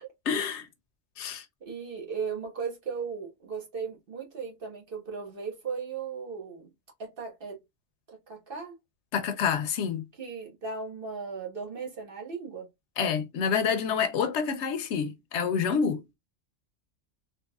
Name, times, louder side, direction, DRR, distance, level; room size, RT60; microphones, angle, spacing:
voice 1, 0.3-0.7 1.2-1.4 9.1-10.0 13.0-16.0, left 6 dB, 75° left, 0.9 m, -28 dB
voice 2, 1.6-6.7 7.0-7.6 8.1-8.8 10.2-12.7, right 5 dB, 50° right, 1.3 m, -37 dB
3.6 x 2.8 x 2.3 m
omnidirectional pair, 1.2 m